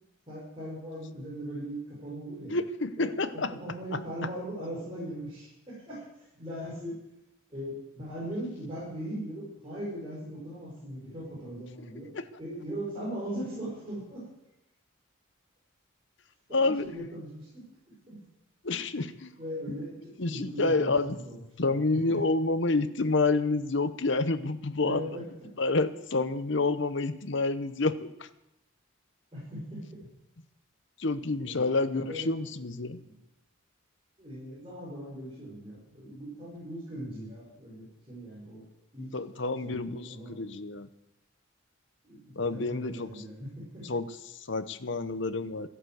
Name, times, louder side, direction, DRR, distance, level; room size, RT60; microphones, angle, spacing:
voice 1, 0.3-2.6 3.0-6.9 7.5-12.1 12.4-14.3 16.5-17.6 18.1-18.2 19.4-22.2 24.8-25.2 29.3-30.0 31.4-33.2 34.2-38.6 38.9-39.1 39.6-40.4 42.0-43.9, right 1 dB, 25° right, -8 dB, 6.0 m, -39 dB
voice 2, 2.5-3.5 3.9-4.0 16.5-16.8 18.6-19.3 20.2-21.2 21.6-25.0 25.6-28.3 31.0-33.0 39.1-40.9 42.4-43.1 43.9-45.7, left 3 dB, 60° left, 12 dB, 0.9 m, -28 dB
14.0 x 11.5 x 7.9 m, 0.87 s
head